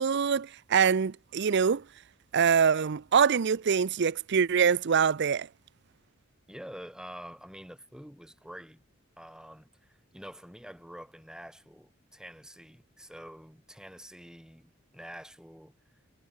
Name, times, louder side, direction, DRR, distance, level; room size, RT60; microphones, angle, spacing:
voice 1, 0.0-1.8 2.3-5.5, right 6 dB, 55° right, 0.5 m, -24 dB
voice 2, 6.5-8.8 9.2-15.8, equal, 5° right, 4.6 m, -47 dB
head